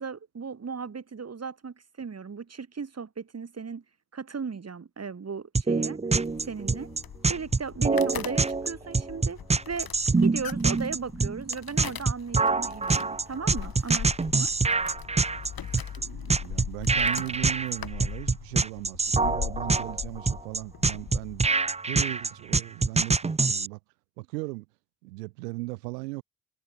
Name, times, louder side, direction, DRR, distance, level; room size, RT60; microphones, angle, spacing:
voice 1, 0.0-3.8 4.1-6.0 6.4-6.9 7.3-9.4 9.7-9.9 10.2-14.5, right 5 dB, 30° right, 5.2 m, -36 dB
sound 1, 5.5-23.7, right 4 dB, 15° right, 0.9 m, -25 dB
sound 2, 6.2-21.5, left 8 dB, 50° left, 6.3 m, -40 dB
voice 2, 16.0-21.4 21.9-23.8 24.2-24.7 25.0-26.2, right 23 dB, 85° right, 3.5 m, -37 dB
hypercardioid pair, 65°, 47 cm